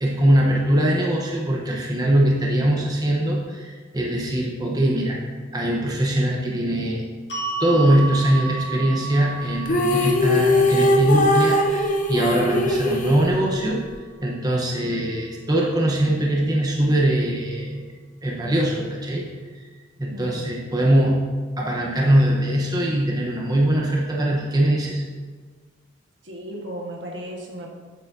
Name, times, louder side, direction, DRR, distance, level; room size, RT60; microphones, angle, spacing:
voice 1, 0.0-7.0 7.6-13.8 14.2-17.9 18.2-19.3 20.0-21.2 21.6-25.0, right 1 dB, 20° right, -2 dB, 0.9 m, -21 dB
sound 1, 7.3-13.5, right 4 dB, 65° left, 2.2 m, -34 dB
sound 2, 9.7-13.9, left 1 dB, 40° left, 0.7 m, -20 dB
voice 2, 20.1-20.5 26.2-27.7, right 1 dB, 70° right, -1 dB, 1.5 m, -35 dB
8.8 x 8.1 x 2.7 m, 1.5 s
head